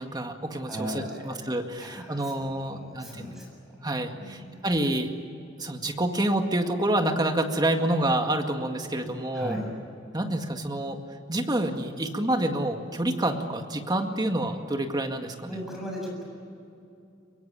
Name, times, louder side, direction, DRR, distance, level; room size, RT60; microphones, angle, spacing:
voice 1, 0.0-3.4 3.8-5.1 5.6-9.6 10.1-11.0 11.3-15.5, right 1 dB, 20° right, 4 dB, 2.0 m, -28 dB
voice 2, 0.6-1.3 1.8-3.8 4.1-4.6 9.3-9.7 15.5-16.2, equal, ahead, -2 dB, 7.5 m, -37 dB
23.5 x 23.0 x 8.9 m, 2.7 s
head